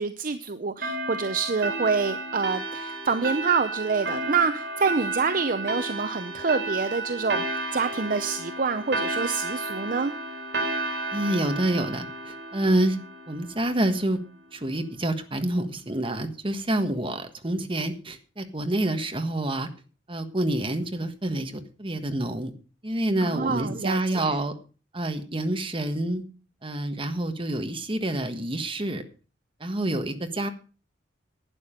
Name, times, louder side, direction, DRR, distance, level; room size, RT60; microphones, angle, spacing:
voice 1, 0.0-10.1 23.2-24.4, right 5 dB, 45° right, 10 dB, 0.6 m, -27 dB
sound 1, 0.8-13.9, right 2 dB, 60° right, 3.6 m, -32 dB
voice 2, 11.1-13.0 13.3-14.2 14.5-19.7 20.1-22.5 22.8-24.5 24.9-26.2 26.6-29.0 29.6-30.5, right 1 dB, 25° right, 7 dB, 1.4 m, -27 dB
11.5 x 9.6 x 5.1 m, 0.35 s
head